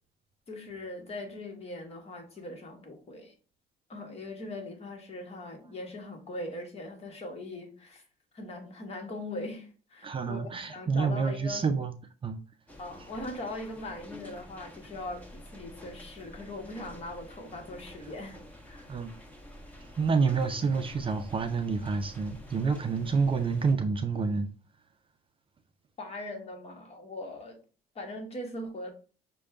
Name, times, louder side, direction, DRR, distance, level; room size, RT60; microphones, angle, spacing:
voice 1, 0.5-3.3 3.9-8.0 8.3-11.7 12.8-18.4 18.6-18.9 26.0-27.6 27.9-28.9, left 1 dB, 40° left, 1.3 m, -40 dB
voice 2, 10.0-11.9 12.2-12.4 18.0-18.1 18.9-19.1 19.8-24.5, right 5 dB, 30° right, 0.5 m, -28 dB
sound 1, 12.7-23.7, left 1 dB, 10° left, 1.1 m, -49 dB
6.4 x 2.3 x 3.4 m
cardioid pair, 110°, 17 cm